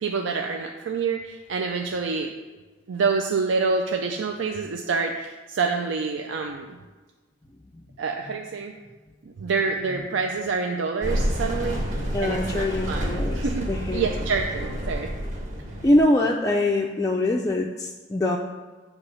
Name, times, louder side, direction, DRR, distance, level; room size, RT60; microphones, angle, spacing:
voice 1, 0.0-2.3 2.9-6.7 8.0-8.7 9.4-11.8 12.2-15.1, right 4 dB, 75° right, 3 dB, 0.4 m, -27 dB
sound 1, 11.0-16.0, equal, 40° right, 1.2 m, -29 dB
voice 2, 12.1-13.4 13.7-14.2 15.8-18.4, left 1 dB, 15° left, -1 dB, 0.3 m, -23 dB
8.0 x 3.0 x 5.5 m, 1.3 s
head